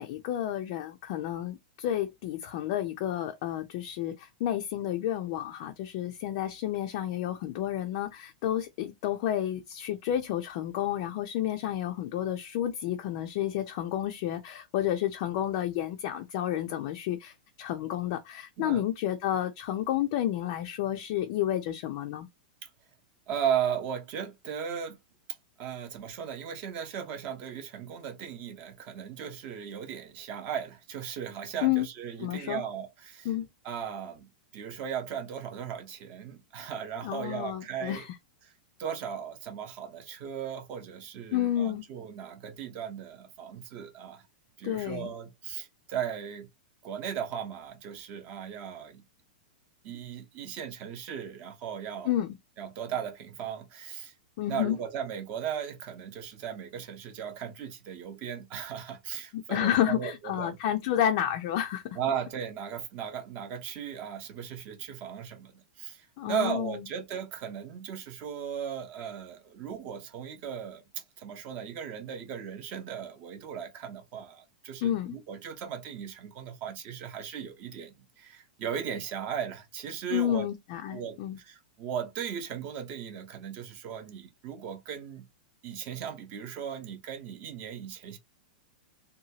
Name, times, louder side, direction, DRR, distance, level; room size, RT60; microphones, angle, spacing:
voice 1, 0.0-22.3 31.6-31.9 32.2-32.6 33.2-33.5 37.0-38.1 41.3-41.8 44.6-45.1 52.1-52.3 54.4-54.8 59.3-62.0 66.2-66.8 74.8-75.2 80.1-81.4, left 11 dB, 40° left, 0.4 m, -30 dB
voice 2, 23.3-25.0 25.6-33.3 33.6-38.1 38.8-44.2 44.6-46.5 46.8-49.0 49.8-52.1 52.6-54.1 54.4-60.6 61.9-80.5 80.9-85.2 85.6-88.2, right 8 dB, 30° right, 0.7 m, -37 dB
2.8 x 2.2 x 2.8 m
supercardioid pair, 165°, 5 cm